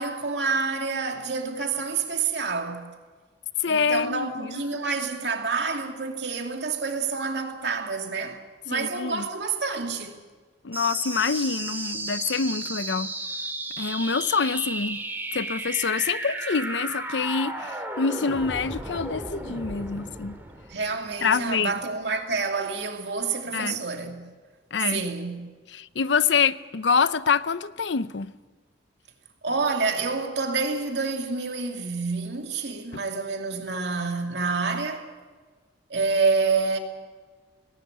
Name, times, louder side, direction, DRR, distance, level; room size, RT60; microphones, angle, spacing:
voice 1, 0.0-2.9 3.7-10.2 20.7-24.2 24.8-25.5 29.4-35.1 35.9-36.8, right 4 dB, 70° right, 2.6 m, -28 dB
voice 2, 3.6-4.6 8.7-9.3 10.6-13.1 13.8-15.0 15.3-20.4 21.2-21.7 23.5-23.8 24.7-25.0 25.7-28.3, left 5 dB, 80° left, 0.7 m, -26 dB
sound 1, 10.7-21.7, right 2 dB, 10° right, 2.3 m, -34 dB
18.5 x 17.5 x 9.5 m
head